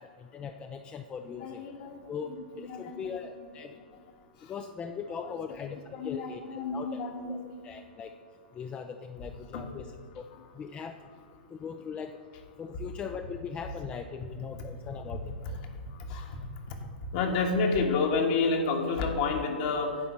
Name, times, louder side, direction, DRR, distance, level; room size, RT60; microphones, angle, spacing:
voice 1, 0.0-1.6 2.1-3.7 4.5-7.0 7.3-7.4 7.6-8.1 8.5-10.2 10.5-11.0 11.5-12.2 12.6-15.3, left 6 dB, 20° left, 7 dB, 0.4 m, -40 dB
voice 2, 1.4-2.0 2.3-3.2 5.3-5.4 5.9-7.6 9.5-9.9 10.3-10.4 15.4-15.5 16.1-16.3 16.7-16.8 17.1-20.0, left 4 dB, 50° left, 3 dB, 1.5 m, -30 dB
9.8 x 4.0 x 7.3 m, 2.1 s
hypercardioid pair, 120°, 5 cm